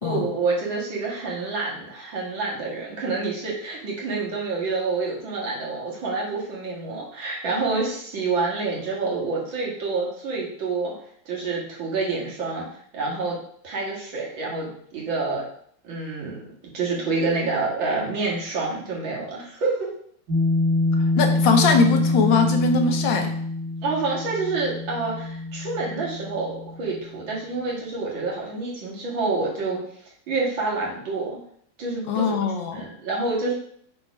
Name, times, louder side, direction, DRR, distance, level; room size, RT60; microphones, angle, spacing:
voice 1, 0.0-10.9 11.3-12.7 12.9-13.4 13.6-15.4 15.8-16.4 16.7-19.9 23.8-29.8 30.3-31.4 31.8-32.4 32.7-33.5, right 3 dB, 80° right, -4 dB, 2.7 m, -27 dB
sound 1, 20.3-27.0, left 2 dB, 55° right, 2.5 m, -25 dB
voice 2, 21.1-23.3 32.1-32.8, left 4 dB, 80° left, 4 dB, 1.6 m, -21 dB
6.4 x 4.5 x 4.7 m, 0.63 s
omnidirectional pair, 2.1 m